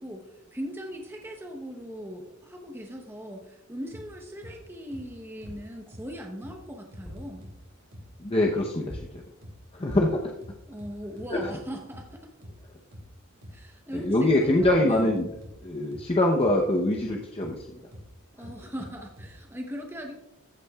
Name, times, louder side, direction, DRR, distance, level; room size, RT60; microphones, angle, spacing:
voice 1, 0.0-7.4 10.7-12.3 13.5-15.1 18.4-20.1, equal, 10° right, 2 dB, 0.9 m, -39 dB
sound 1, 3.9-4.1 4.4-4.6 4.9-5.1 5.4-5.6 5.9-6.1 6.4-6.6 6.9-7.6 7.9-8.1 8.4-8.6 8.9-9.1 9.4-9.6 9.9-10.1 10.4-11.6 11.9-12.1 12.4-12.6 12.9-13.1 13.4-13.6 13.9-14.1 14.4-14.6 14.9-15.6 15.9-16.1 16.4-16.6 16.9-17.1 17.4-17.6 17.9-18.1 18.4-19.3, equal, 65° right, 2.9 m, -45 dB
sound 2, 5.4-5.8 6.9-7.4 8.9-9.3 9.9-10.3 14.3-14.4 14.6-14.9, left 1 dB, 10° left, 3.0 m, -42 dB
voice 2, 8.2-9.2 9.7-10.3 11.3-11.4 13.9-15.3 15.6-17.8, left 1 dB, 25° left, 0 dB, 0.8 m, -24 dB
14.5 x 8.4 x 2.3 m, 0.89 s
head